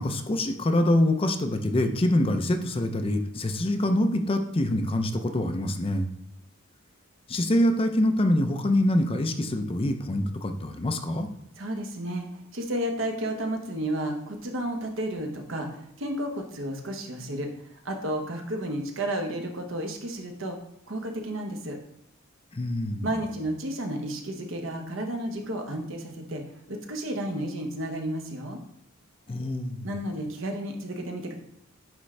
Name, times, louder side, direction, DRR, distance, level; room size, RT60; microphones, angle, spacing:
voice 1, 0.0-6.1 7.3-11.3 22.5-23.1 29.3-29.9, left 1 dB, 25° left, 6 dB, 0.5 m, -25 dB
voice 2, 11.6-17.5 17.8-20.6 20.9-21.8 23.0-26.4 26.7-28.6 29.8-31.3, right 1 dB, 70° right, 3 dB, 1.0 m, -32 dB
9.5 x 3.6 x 3.3 m, 0.77 s
head